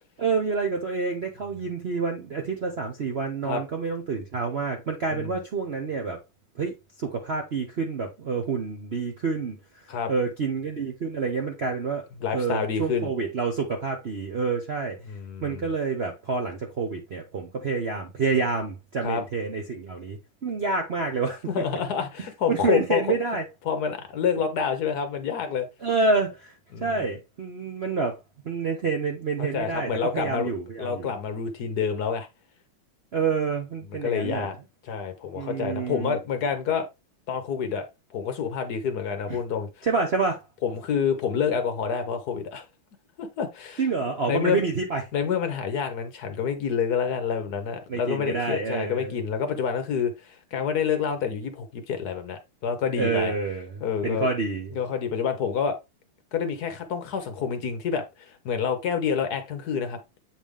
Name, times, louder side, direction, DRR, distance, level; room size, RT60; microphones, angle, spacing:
voice 1, 0.2-6.2 6.6-9.6 10.1-12.1 12.3-15.0 15.4-21.4 22.5-23.4 25.8-26.5 26.8-28.2 28.4-31.1 33.1-34.5 35.3-36.2 39.8-40.4 43.8-45.0 47.9-49.1 53.0-54.7, right 4 dB, 85° right, 0.5 m, -28 dB
voice 2, 12.2-13.1 15.1-15.7 19.0-19.2 21.5-23.0 23.7-25.7 26.7-27.1 29.5-30.5 30.8-32.3 34.0-34.5 34.8-36.9 37.3-37.9 38.1-39.9 40.6-42.6 43.2-43.9 44.3-44.6 45.1-53.3 53.8-54.3 54.7-55.8 56.3-60.0, left 7 dB, 60° left, 1.1 m, -28 dB
7.9 x 3.4 x 3.4 m
omnidirectional pair, 2.4 m